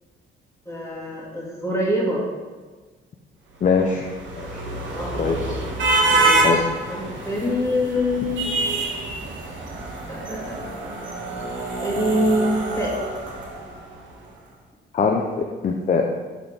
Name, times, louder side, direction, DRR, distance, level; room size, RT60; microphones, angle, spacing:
voice 1, 0.7-2.2 4.9-5.3 6.1-8.7 10.1-10.6 11.8-13.0, equal, 15° left, -4 dB, 1.9 m, -25 dB
voice 2, 3.6-4.1 4.4-4.6 5.2-5.6 6.4-6.6 14.9-16.1, left 5 dB, 40° left, 2 dB, 0.5 m, -22 dB
sound 1, 3.7-14.0, right 2 dB, 70° right, 1.4 m, -26 dB
6.0 x 3.5 x 5.1 m, 1.4 s
cardioid pair, 90°, 20 cm